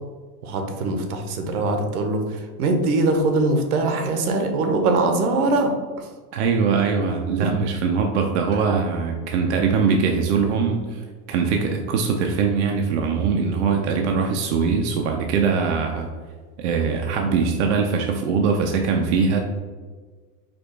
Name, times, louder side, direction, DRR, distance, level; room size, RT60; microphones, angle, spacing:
voice 1, 0.4-6.1 7.4-7.5, right 2 dB, 65° right, 5 dB, 0.9 m, -22 dB
voice 2, 6.3-16.1 16.6-19.4, right 5 dB, 50° right, 2 dB, 0.5 m, -22 dB
5.1 x 2.3 x 4.5 m, 1.5 s
supercardioid pair, 165°, 48 cm